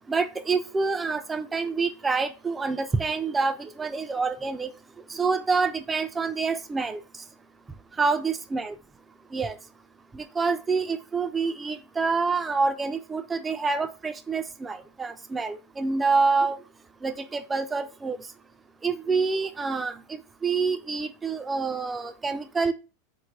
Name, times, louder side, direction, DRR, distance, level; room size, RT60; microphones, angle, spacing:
voice 1, 0.1-4.7 5.1-7.0 8.0-8.7 9.3-9.5 10.1-16.6 17.0-18.2 18.8-20.0 20.4-22.7, right 4 dB, 15° right, 10 dB, 0.4 m, -27 dB
3.2 x 2.1 x 3.4 m, 0.31 s
hypercardioid pair, 115°, 0 cm